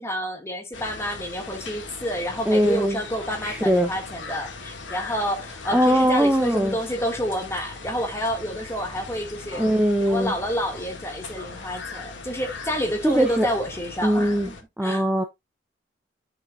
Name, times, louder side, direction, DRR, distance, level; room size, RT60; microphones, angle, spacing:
voice 1, 0.0-9.7 10.0-14.6 14.8-15.0, equal, 15° left, 1.9 m, -29 dB
sound 1, 0.7-14.6, left 3 dB, 85° left, 1.9 m, -39 dB
voice 2, 2.5-3.0 3.4-3.9 5.7-6.8 9.6-10.3 13.0-13.5 14.0-14.5 14.8-15.2, equal, 5° right, 0.6 m, -21 dB
9.3 x 6.0 x 2.4 m
head